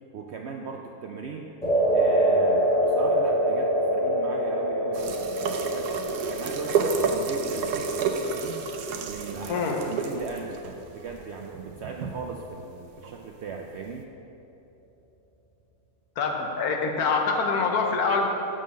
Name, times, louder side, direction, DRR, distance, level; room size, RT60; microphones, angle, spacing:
voice 1, 0.1-1.5 1.9-5.3 5.5-6.0 6.2-8.6 9.0-10.6 10.9-14.1, right 5 dB, 70° right, 2 dB, 0.6 m, -38 dB
sound 1, 1.6-10.0, right 1 dB, 5° left, 1.7 m, -26 dB
sound 2, 4.9-12.3 13.0-13.2, right 5 dB, 85° right, 1.2 m, -30 dB
voice 2, 16.2-18.3, left 4 dB, 75° left, 2 dB, 1.4 m, -25 dB
7.3 x 5.6 x 6.3 m, 2.9 s
omnidirectional pair, 1.6 m